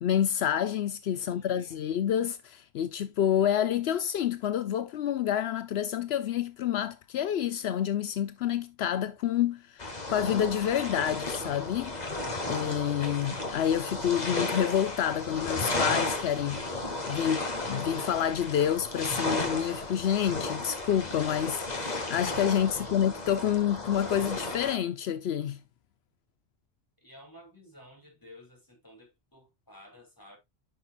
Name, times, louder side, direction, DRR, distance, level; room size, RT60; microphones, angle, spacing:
voice 1, 0.0-11.9 12.5-16.6 17.1-25.6, left 9 dB, 80° left, 0.9 m, -28 dB
voice 2, 1.1-1.8 22.6-22.9 27.0-30.4, equal, 20° left, 3.2 m, -53 dB
sound 1, 9.8-24.8, left 2 dB, 45° left, 1.6 m, -34 dB
10.0 x 5.6 x 2.5 m
omnidirectional pair, 1.1 m